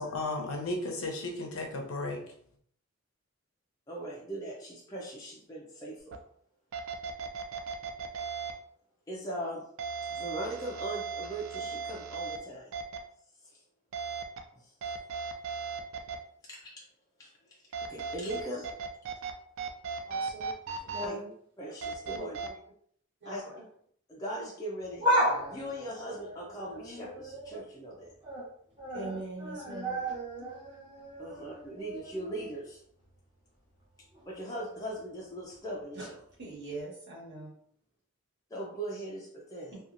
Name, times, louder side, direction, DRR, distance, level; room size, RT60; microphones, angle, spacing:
voice 1, 0.0-2.2, left 2 dB, 80° left, 2 dB, 0.7 m, -34 dB
voice 2, 3.9-6.2 9.1-9.6 10.1-12.7 13.4-13.6 14.5-14.7 16.5-16.8 17.2-17.6 17.9-18.7 21.0-21.2 21.6-22.4 23.3-23.4 24.1-25.1 25.5-28.1 31.2-32.8 34.1-36.2 38.5-39.7, right 1 dB, 15° left, -5 dB, 0.4 m, -39 dB
sound 1, 6.1-6.2 6.7-8.5 9.8-12.4 12.7-13.0 13.9-14.4 14.8-16.2 17.7-19.3 19.6-21.1 21.8-22.5, right 5 dB, 70° right, 0.3 m, -36 dB
voice 3, 20.0-21.3 22.1-22.5 23.2-23.6 28.9-30.0 35.9-36.1 36.4-37.5 39.7-39.8, right 2 dB, 55° right, -5 dB, 1.3 m, -42 dB
sound 2, 24.8-27.6 28.0-28.5 28.8-32.7 33.0-33.1 34.1-34.2, equal, 20° right, 0.8 m, -34 dB
2.8 x 2.3 x 2.5 m, 0.64 s
head